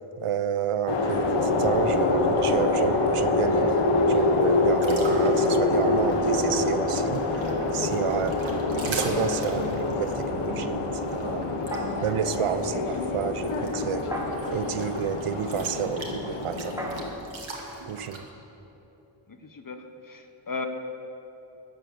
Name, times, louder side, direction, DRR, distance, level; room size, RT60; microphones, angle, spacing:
voice 1, 0.2-3.8 4.1-7.2 7.7-8.4 8.8-11.6 12.0-14.1 14.5-16.8 17.9-18.3, right 8 dB, 90° right, 12 dB, 0.7 m, -30 dB
sound 1, 0.9-17.1, left 2 dB, 85° left, 1.4 m, -25 dB
sound 2, 4.8-18.2, right 3 dB, 65° right, 2.0 m, -41 dB
sound 3, 8.9-10.0 11.7-12.3 14.1-14.8 16.8-18.5, equal, 5° right, 1.6 m, -38 dB
voice 2, 19.3-20.7, left 3 dB, 40° left, 6 dB, 1.2 m, -37 dB
14.0 x 9.6 x 7.0 m, 3.0 s
wide cardioid pair, 80°, 50 cm